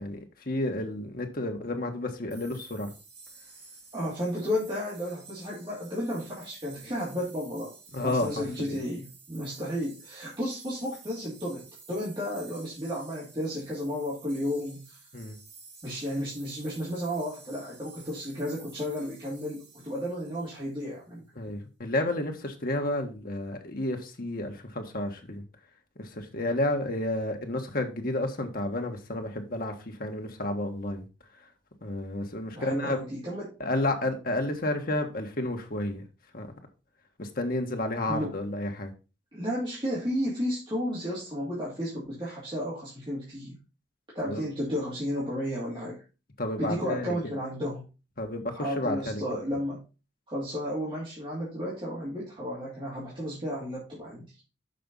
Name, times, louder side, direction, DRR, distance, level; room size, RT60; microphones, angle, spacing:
voice 1, 0.0-2.9 7.9-8.8 15.1-15.4 21.4-25.4 26.0-31.0 31.8-33.0 33.6-36.0 36.3-36.5 37.2-38.9 44.2-44.4 46.4-47.3 48.2-49.2, left 1 dB, 55° left, 1.5 m, -31 dB
sound 1, 2.3-21.0, right 4 dB, 70° right, 3.9 m, -52 dB
voice 2, 3.9-15.0 15.8-21.2 32.5-33.6 38.1-38.3 39.3-43.6 44.1-46.0 46.6-47.8 48.5-49.8 50.3-54.3, equal, 25° right, 2.7 m, -33 dB
6.7 x 5.2 x 5.4 m
head